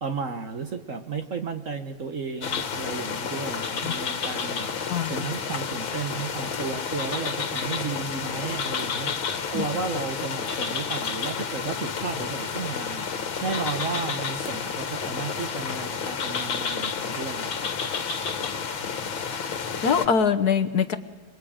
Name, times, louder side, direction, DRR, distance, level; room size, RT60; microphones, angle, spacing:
voice 1, 0.0-4.7 5.1-9.1 9.5-13.1 13.4-17.7, right 5 dB, 45° right, 7 dB, 1.4 m, -33 dB
sound 1, 2.4-20.1, left 6 dB, 75° left, 2.3 m, -30 dB
voice 2, 19.8-21.0, left 6 dB, 55° left, 7 dB, 1.4 m, -23 dB
28.0 x 21.5 x 8.7 m, 1.3 s
omnidirectional pair, 2.2 m